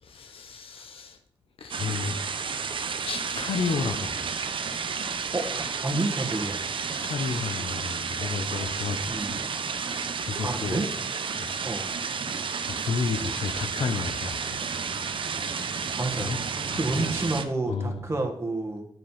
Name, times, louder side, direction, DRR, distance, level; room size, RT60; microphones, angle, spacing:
voice 1, 0.0-1.2 1.6-2.2 3.0-4.3 7.0-9.4 10.2-10.8 11.3-11.6 12.6-14.6 16.2-16.4 16.7-17.0 17.6-18.1, left 5 dB, 90° left, 6 dB, 0.9 m, -32 dB
sound 1, 1.7-17.4, right 5 dB, 70° right, 0.8 m, -31 dB
voice 2, 5.8-6.7 9.1-9.3 10.4-10.9 11.6-11.9 16.0-16.3 16.8-18.9, right 2 dB, 30° right, 2 dB, 1.6 m, -29 dB
11.0 x 5.2 x 5.7 m, 0.65 s
wide cardioid pair, 115°, 9 cm